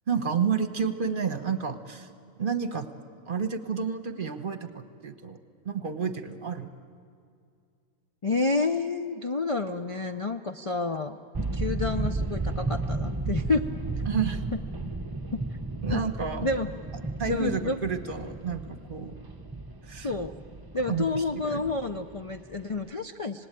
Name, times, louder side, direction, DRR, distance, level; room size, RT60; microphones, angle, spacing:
voice 1, 0.1-2.1 2.4-2.9 3.3-5.4 5.6-6.7 14.1-14.5 15.8-16.5 17.2-19.1 19.9-20.1 20.9-21.6, right 6 dB, 45° right, 8 dB, 1.3 m, -30 dB
voice 2, 8.2-11.2 11.5-13.7 14.5-14.6 15.3-15.4 15.9-16.0 16.4-16.7 17.3-17.8 19.9-20.3 20.7-23.5, left 3 dB, 35° left, 6 dB, 0.5 m, -29 dB
sound 1, 11.3-22.9, right 3 dB, 20° right, 0.9 m, -34 dB
26.0 x 19.5 x 9.0 m, 2.3 s
omnidirectional pair, 1.3 m